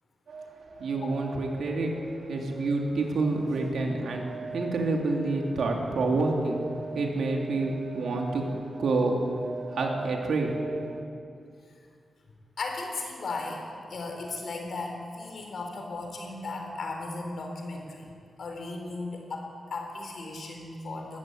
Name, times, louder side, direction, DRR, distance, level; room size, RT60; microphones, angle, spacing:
voice 1, 0.3-11.0, right 3 dB, 85° right, 1 dB, 3.1 m, -28 dB
voice 2, 0.9-1.2 12.6-18.1 18.4-21.2, left 3 dB, 60° left, 2 dB, 4.1 m, -36 dB
20.5 x 14.5 x 9.4 m, 2.4 s
wide cardioid pair, 160°, 0 cm